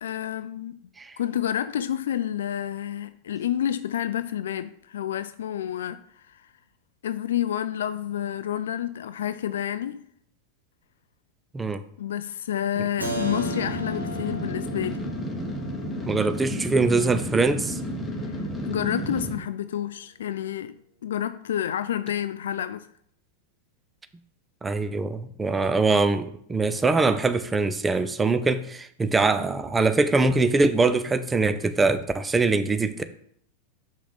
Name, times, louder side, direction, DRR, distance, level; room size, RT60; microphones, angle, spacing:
voice 1, 0.0-0.8 1.2-6.5 7.0-10.0 12.0-15.0 18.2-22.9, left 10 dB, 60° left, 0.3 m, -29 dB
sound 1, 13.0-19.4, equal, 5° left, 1.6 m, -32 dB
Keyboard (musical), 13.0-18.6, right 1 dB, 85° right, 1.1 m, -37 dB
voice 2, 16.1-17.8 24.6-33.0, right 3 dB, 15° right, 0.6 m, -23 dB
7.2 x 5.7 x 4.1 m
figure-of-eight pair, 90°, 0 cm